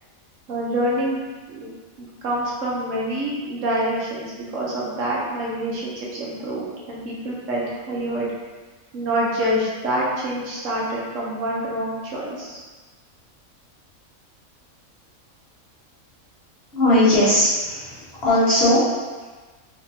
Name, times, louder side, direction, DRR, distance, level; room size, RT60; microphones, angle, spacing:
voice 1, 0.5-1.2 1.5-1.7 2.0-8.3 8.9-12.6, right 1 dB, 65° right, -6 dB, 1.1 m, -26 dB
voice 2, 16.7-18.0 18.2-18.8, left 1 dB, 45° left, -10 dB, 1.5 m, -18 dB
4.3 x 3.0 x 2.7 m, 1.3 s
omnidirectional pair, 1.5 m